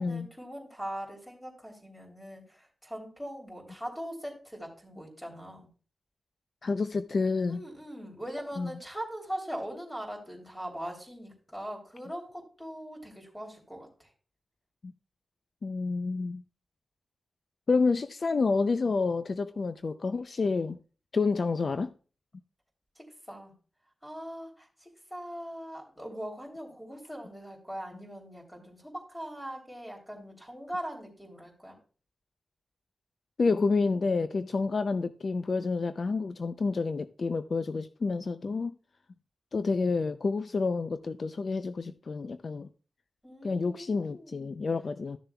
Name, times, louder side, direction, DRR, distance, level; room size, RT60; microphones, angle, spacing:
voice 1, 0.0-5.7 7.5-14.1 22.9-23.6 24.0-31.8 43.2-44.6, equal, 10° left, 3.2 m, -41 dB
voice 2, 6.6-7.6 8.6-8.7 14.8-14.9 15.6-16.4 17.7-20.8 21.1-21.9 33.4-38.7 39.5-42.7 43.4-45.2, left 4 dB, 50° left, 0.4 m, -29 dB
13.5 x 6.7 x 2.3 m
wide cardioid pair, 90°, 0 cm